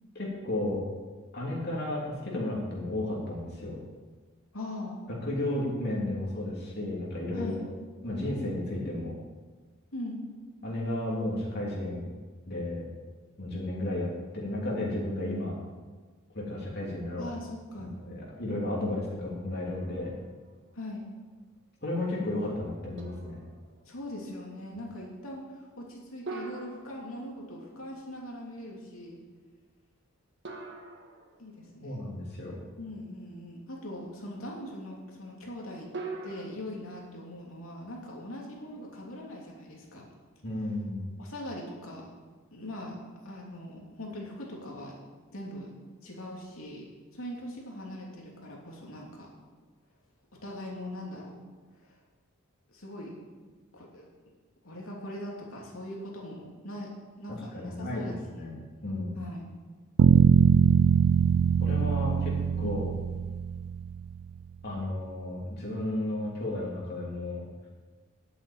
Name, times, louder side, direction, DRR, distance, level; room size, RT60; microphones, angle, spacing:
voice 1, 0.1-0.8 1.3-3.8 5.1-7.6 8.0-9.2 10.6-12.1 12.5-12.8 13.4-15.6 16.3-17.3 17.8-20.1 21.8-23.4 31.8-32.6 40.4-41.0 57.3-58.6 58.8-59.2 61.6-62.8 64.6-67.5, left 1 dB, 50° left, -4 dB, 3.0 m, -33 dB
voice 2, 4.5-5.0 7.3-7.6 9.9-10.2 17.2-17.9 20.7-21.0 23.8-29.2 31.4-32.0 32.8-35.9 36.2-40.1 41.2-42.1 42.5-43.0 43.2-45.0 45.3-45.7 46.0-46.9 47.1-49.3 50.4-51.4 51.8-51.9 52.7-53.2 53.7-54.1 54.6-56.9 57.2-58.5 59.1-59.5 62.6-62.8, left 1 dB, 75° left, -2 dB, 3.3 m, -41 dB
sound 1, 19.7-20.5 21.0-21.1 23.0-23.9 26.3-27.8 30.4-31.8 35.9-36.5, right 3 dB, 60° right, 1.7 m, -43 dB
sound 2, 60.0-64.1, right 7 dB, 90° right, 0.3 m, -22 dB
10.5 x 8.1 x 8.8 m, 1.4 s
head